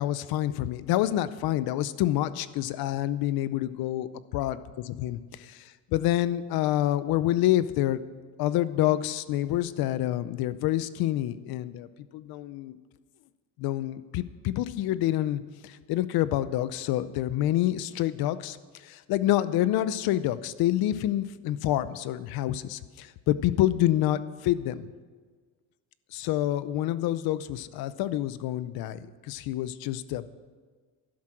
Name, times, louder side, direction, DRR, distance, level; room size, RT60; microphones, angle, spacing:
voice 1, 0.0-8.0 8.4-11.9 12.1-12.8 13.6-18.6 18.8-24.9 26.1-30.4, left 13 dB, 60° left, 15 dB, 0.7 m, -27 dB
12.0 x 11.5 x 6.1 m, 1.5 s
cardioid pair, 165°, 41 cm